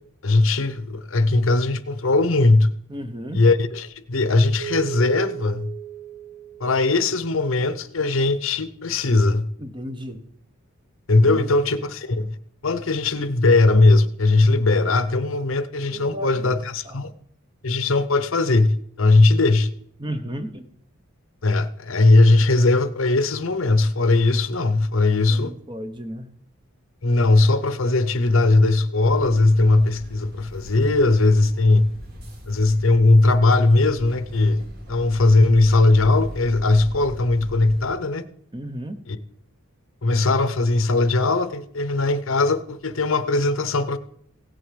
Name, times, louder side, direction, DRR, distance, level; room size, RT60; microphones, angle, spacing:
voice 1, 0.2-2.7 3.3-5.7 6.6-9.5 11.1-12.3 12.6-17.1 17.6-19.7 21.4-25.5 27.0-31.9 32.5-34.6 34.9-38.2 39.1-39.2 40.0-44.0, left 2 dB, 65° left, 0.8 m, -19 dB
voice 2, 2.9-3.4 9.6-10.2 11.2-11.4 15.9-16.5 16.8-17.0 20.0-20.7 25.3-26.3 38.5-39.0, equal, 20° right, 0.9 m, -33 dB
Keyboard (musical), 4.6-7.6, right 12 dB, 75° right, 1.5 m, -36 dB
sound 1, 29.1-37.9, equal, 45° right, 2.3 m, -40 dB
16.5 x 7.6 x 5.2 m
head